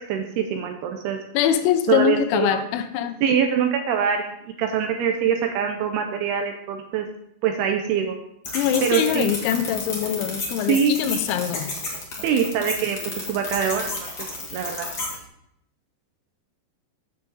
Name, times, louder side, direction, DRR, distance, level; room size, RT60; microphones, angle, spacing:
voice 1, 0.1-1.2 1.9-2.6 3.2-4.3 4.6-7.1 7.4-8.2 8.8-9.3 10.7-11.0 12.2-13.0 13.3-13.9 14.5-14.9, right 7 dB, 80° right, 4 dB, 2.4 m, -23 dB
voice 2, 1.3-3.2 8.5-11.7, left 10 dB, 85° left, 10 dB, 3.1 m, -23 dB
sound 1, 8.4-15.2, left 2 dB, 55° left, 1.0 m, -32 dB
9.1 x 7.6 x 4.0 m, 0.75 s
omnidirectional pair, 5.2 m